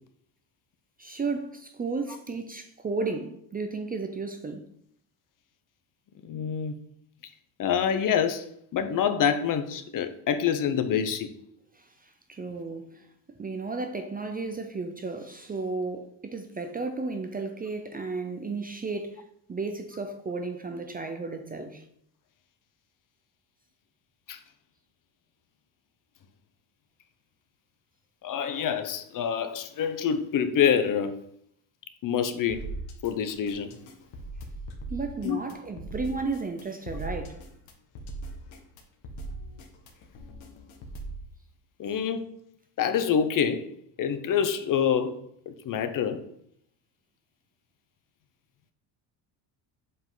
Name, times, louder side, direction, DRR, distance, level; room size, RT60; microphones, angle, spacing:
voice 1, 1.0-4.7 11.7-13.1 13.4-19.2 19.5-21.8 34.9-37.4, right 3 dB, 20° right, 0.5 m, -33 dB
voice 2, 6.2-6.8 7.6-8.5 8.7-11.3 24.3-24.4 28.2-31.1 32.0-32.7 33.0-33.7 35.2-35.4 41.8-42.2 42.8-43.7 44.0-45.2 45.5-46.2, left 8 dB, 40° left, 0.7 m, -26 dB
sound 1, 32.5-41.2, right 2 dB, 70° left, 1.7 m, -40 dB
7.8 x 5.5 x 3.8 m
cardioid pair, 140°, 49 cm